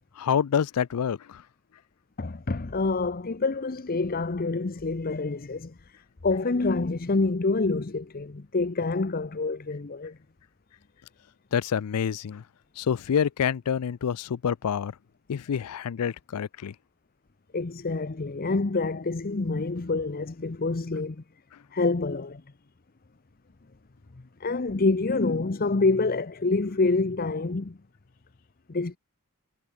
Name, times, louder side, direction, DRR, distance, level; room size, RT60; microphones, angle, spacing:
voice 1, 0.2-1.4 11.5-12.4 12.8-14.9 15.3-16.7, left 7 dB, 90° left, 0.4 m, -27 dB
voice 2, 2.2-6.0 6.2-10.2 17.5-21.2 21.7-22.4 24.4-27.8 28.7-29.0, left 3 dB, 40° left, 0.7 m, -27 dB
head